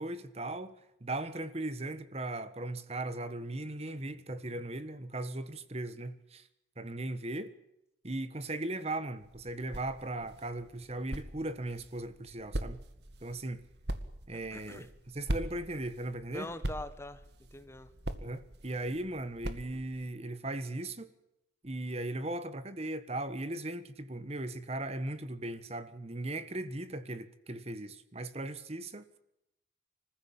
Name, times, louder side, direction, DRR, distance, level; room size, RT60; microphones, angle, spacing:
voice 1, 0.0-6.5 6.8-7.5 8.0-12.8 13.2-13.6 14.3-16.5 18.2-21.1 21.6-29.2, right 2 dB, 35° right, 1.3 m, -38 dB
sound 1, 9.2-20.1, right 1 dB, 60° right, 2.0 m, -42 dB
voice 2, 14.5-14.9 16.3-17.2 17.5-17.9, left 1 dB, 15° left, 1.3 m, -42 dB
26.5 x 15.0 x 8.7 m
head